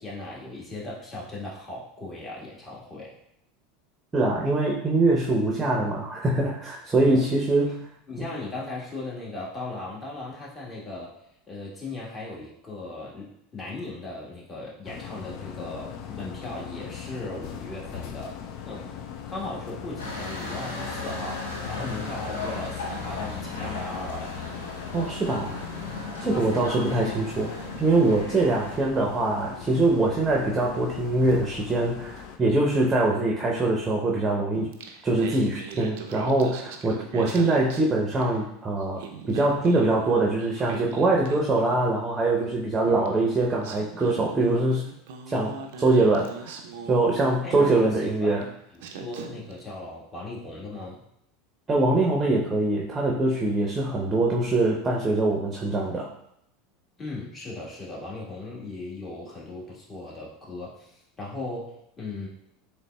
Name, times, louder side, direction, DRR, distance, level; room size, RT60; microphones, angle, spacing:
voice 1, 0.0-3.1 7.0-7.3 8.1-11.1 11.5-18.9 19.3-24.4 26.2-26.5 28.5-28.7 35.7-36.0 42.8-43.1 47.4-48.5 49.0-51.0 57.0-62.3, left 2 dB, 25° left, -5 dB, 1.4 m, -37 dB
voice 2, 4.1-7.8 24.9-25.6 26.2-27.5 27.8-34.7 35.0-44.8 45.3-46.5 46.9-48.4 51.7-56.1, right 2 dB, 20° right, -2 dB, 0.6 m, -23 dB
sound 1, 14.8-32.4, left 8 dB, 55° left, 0.3 m, -40 dB
sound 2, 20.0-28.7, left 2 dB, 85° left, 0.7 m, -36 dB
Singing, 34.5-38.5 38.8-42.0 43.1-43.2 43.6-47.8 48.4-48.5 48.8-49.6, right 5 dB, 70° right, 0.4 m, -41 dB
3.9 x 3.1 x 2.2 m, 0.75 s
hypercardioid pair, 85°, 0 cm